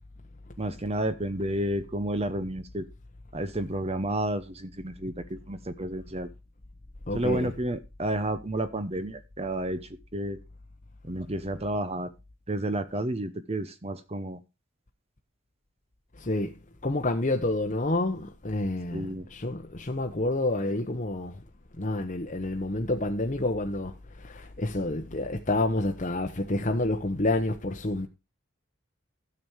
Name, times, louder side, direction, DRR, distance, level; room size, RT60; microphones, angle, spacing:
voice 1, 0.6-2.9 3.3-6.3 7.1-10.4 11.0-12.1 12.5-14.4 18.9-19.3, right 1 dB, 30° right, 0.8 m, -31 dB
voice 2, 7.1-7.5 16.2-16.5 16.8-21.4 21.8-28.1, left 2 dB, 35° left, 1.0 m, -29 dB
12.5 x 7.2 x 4.6 m
head